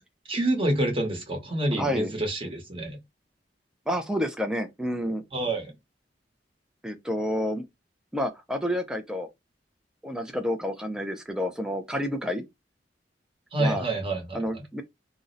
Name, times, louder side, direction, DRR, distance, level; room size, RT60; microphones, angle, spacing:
voice 1, 0.3-3.0 5.3-5.7 13.5-14.6, right 1 dB, 30° right, 0.9 m, -27 dB
voice 2, 1.8-2.1 3.9-5.2 6.8-7.6 8.1-9.3 10.0-12.4 13.6-13.8 14.3-14.8, equal, 5° right, 0.4 m, -29 dB
2.5 x 2.0 x 3.8 m
head